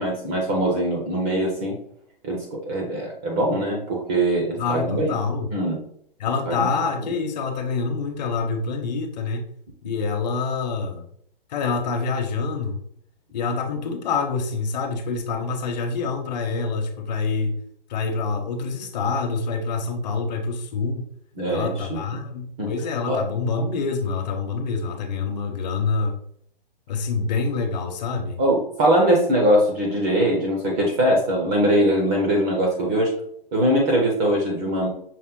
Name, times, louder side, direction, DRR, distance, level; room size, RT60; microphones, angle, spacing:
voice 1, 0.0-1.8 2.2-5.2 5.5-5.8 6.5-6.7 7.0-7.2 21.4-22.2 22.6-22.7 23.0-23.2 28.4-33.1 33.5-34.9, right 1 dB, 15° right, -1 dB, 0.4 m, -22 dB
voice 2, 4.6-5.5 6.2-9.5 9.8-11.1 11.5-12.8 13.3-17.6 17.9-21.1 21.5-26.2 26.9-28.4, left 4 dB, 45° left, 5 dB, 0.8 m, -26 dB
5.6 x 2.1 x 3.6 m, 0.66 s
hypercardioid pair, 145°, 29 cm